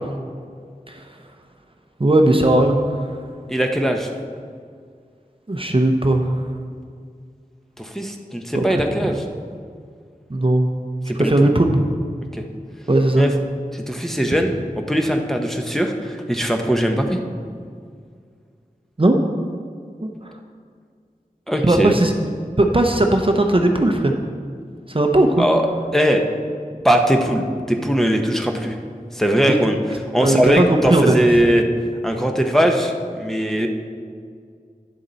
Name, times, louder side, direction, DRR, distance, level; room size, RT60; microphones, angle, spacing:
voice 1, 2.0-2.8 5.5-6.5 8.5-8.7 9.0-9.1 10.3-10.7 11.2-11.8 12.9-13.3 19.0-19.2 20.0-20.3 21.6-22.1 22.6-24.1 24.9-25.5 29.5-29.6 30.2-31.1, right 1 dB, 35° right, 3 dB, 0.7 m, -17 dB
voice 2, 3.5-4.1 7.8-9.2 11.1-11.5 12.3-12.4 13.2-13.3 13.7-14.6 14.9-17.2 21.5-22.0 25.4-25.6 25.9-26.3 26.8-28.7 29.1-29.8 30.1-31.7 32.0-33.7, equal, ahead, 2 dB, 0.8 m, -20 dB
10.5 x 7.2 x 4.0 m, 2.1 s
wide cardioid pair, 45°, 15 cm